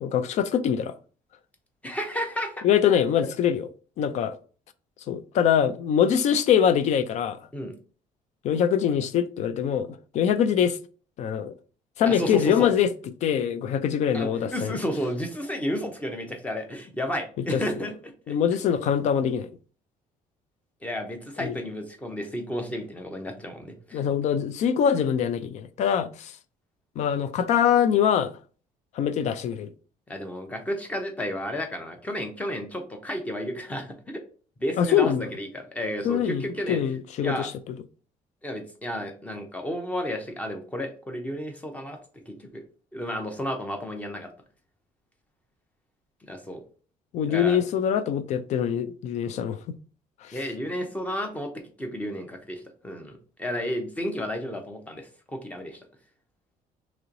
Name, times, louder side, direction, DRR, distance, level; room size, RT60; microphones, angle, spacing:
voice 1, 0.0-0.9 2.6-3.7 4.0-4.4 5.1-7.4 8.4-10.8 11.2-11.5 12.0-12.9 13.2-14.7 17.4-17.6 18.3-19.5 21.4-21.6 23.9-26.3 27.0-28.3 28.9-29.7 34.8-35.3 36.0-37.8 47.1-49.8 50.2-50.4, left 8 dB, 55° left, 0.4 m, -23 dB
voice 2, 1.8-2.7 7.5-7.7 12.1-12.7 14.1-18.4 20.8-24.0 30.1-34.2 34.6-36.8 37.2-37.5 38.4-42.0 42.3-42.6 42.9-44.3 46.3-46.6 47.3-47.6 50.3-51.5 51.8-53.1 53.4-55.8, equal, 10° left, 0.7 m, -32 dB
3.1 x 2.9 x 3.7 m
cardioid pair, 170°, 14 cm